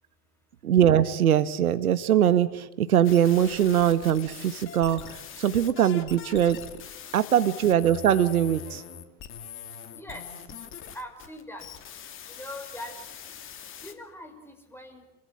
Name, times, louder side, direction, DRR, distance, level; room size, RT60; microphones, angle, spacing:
voice 1, 0.6-6.6 7.1-9.0, right 10 dB, 65° right, 13 dB, 1.5 m, -22 dB
sound 1, 3.0-13.9, left 8 dB, 25° left, 2.6 m, -43 dB
voice 2, 9.9-10.2 10.9-11.7 12.3-13.3 13.8-15.1, left 1 dB, 5° left, 5 dB, 5.3 m, -42 dB
29.5 x 23.0 x 8.8 m, 0.98 s
figure-of-eight pair, 95°, 47 cm